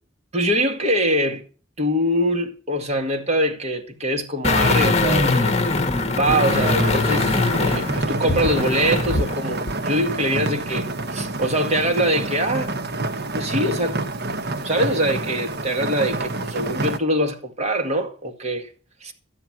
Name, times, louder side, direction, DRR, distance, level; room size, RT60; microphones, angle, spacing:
voice 1, 0.3-1.4 1.8-5.8 6.1-12.7 13.3-14.0 14.6-18.7 19.0-19.1, right 1 dB, 35° right, 2.2 m, -23 dB
sound 1, 4.4-9.3 9.7-9.8, left 3 dB, 30° left, 1.4 m, -21 dB
sound 2, 6.4-17.0, right 2 dB, 55° right, 1.2 m, -28 dB
12.5 x 10.0 x 6.2 m
head